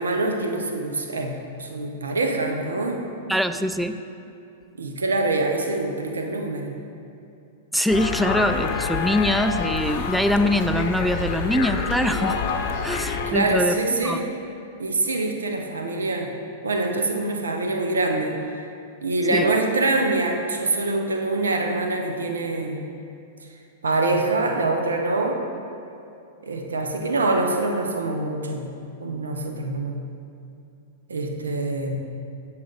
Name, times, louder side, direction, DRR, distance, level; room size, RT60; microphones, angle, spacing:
voice 1, 0.0-3.0 4.8-6.8 13.3-14.3 14.8-16.3 16.6-18.4 19.0-22.9 23.8-25.4 26.4-28.7 29.0-30.0 31.1-32.0, right 2 dB, 85° right, 3 dB, 0.7 m, -25 dB
voice 2, 3.3-4.0 7.7-12.4 12.8-13.8 14.0-14.2 19.3-19.5, equal, ahead, 9 dB, 0.3 m, -23 dB
sound 1, 7.9-13.3, left 6 dB, 50° left, 0.7 m, -27 dB
7.6 x 5.7 x 3.9 m, 2.6 s
hypercardioid pair, 110°, 0 cm